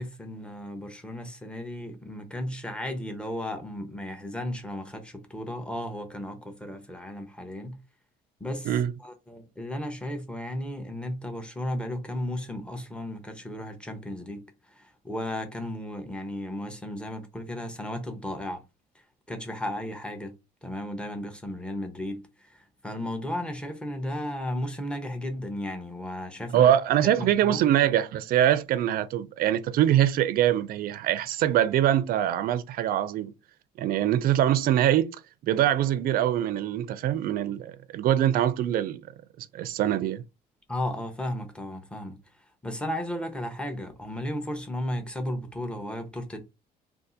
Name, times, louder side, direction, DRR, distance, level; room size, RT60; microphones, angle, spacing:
voice 1, 0.0-7.8 8.4-8.7 9.0-18.6 19.3-20.3 20.6-26.7 27.0-27.7 40.7-42.2 42.6-46.4, left 1 dB, 5° left, 0.7 m, -34 dB
voice 2, 26.5-33.3 33.8-35.2 35.4-39.0 39.4-40.2, right 11 dB, 60° right, 0.4 m, -23 dB
2.6 x 2.4 x 3.7 m
cardioid pair, 110°, 17 cm